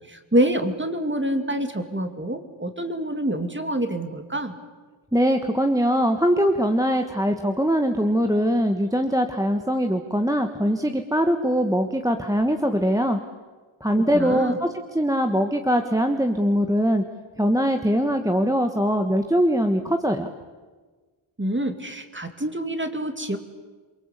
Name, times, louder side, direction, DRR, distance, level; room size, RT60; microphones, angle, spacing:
voice 1, 0.1-4.5 14.0-14.6 21.4-23.4, right 1 dB, 20° right, 7 dB, 2.6 m, -26 dB
voice 2, 5.1-13.2 13.8-14.7 14.9-17.0 17.4-20.3, equal, 5° right, 5 dB, 1.4 m, -22 dB
28.0 x 23.0 x 8.4 m, 1.4 s
wide cardioid pair, 80°, 50 cm